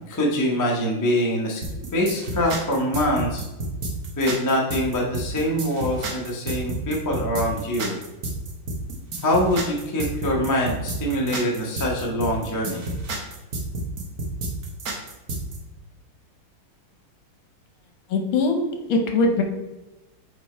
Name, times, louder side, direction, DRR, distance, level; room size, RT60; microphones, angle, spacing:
voice 1, 0.0-1.6 1.9-3.4 4.2-7.9 9.2-12.9, equal, 20° left, -2 dB, 0.5 m, -24 dB
sound 1, 1.6-15.6, right 2 dB, 50° right, 1.4 m, -30 dB
voice 2, 18.1-18.6 18.9-19.4, left 3 dB, 70° left, 4 dB, 1.6 m, -21 dB
5.1 x 4.4 x 4.4 m, 1.1 s
omnidirectional pair, 2.3 m